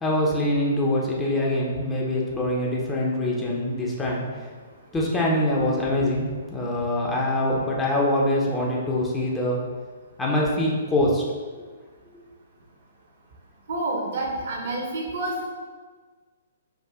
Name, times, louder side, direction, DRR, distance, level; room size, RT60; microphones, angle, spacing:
voice 1, 0.0-4.5 4.9-9.6 10.2-11.2 11.6-11.7, left 1 dB, 10° left, -4 dB, 0.8 m, -24 dB
voice 2, 13.7-15.3, right 2 dB, 60° right, -1 dB, 1.0 m, -28 dB
4.8 x 2.5 x 3.6 m, 1.5 s
figure-of-eight pair, 120°, 0 cm